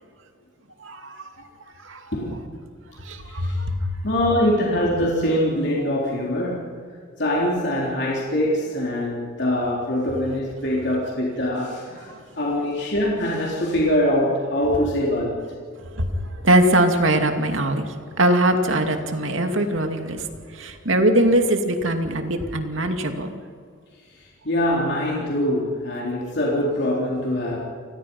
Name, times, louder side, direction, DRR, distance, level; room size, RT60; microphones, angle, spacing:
voice 1, 0.8-1.2 1.8-2.0 3.1-3.8 12.1-12.2 16.0-16.1 16.4-20.2 20.6-23.4, right 1 dB, 75° right, 5 dB, 2.5 m, -21 dB
voice 2, 3.2-3.6 4.0-6.8 7.2-12.1 12.4-15.4 24.4-27.7, left 1 dB, 55° left, -4 dB, 3.9 m, -23 dB
29.0 x 20.0 x 5.6 m, 2.1 s
head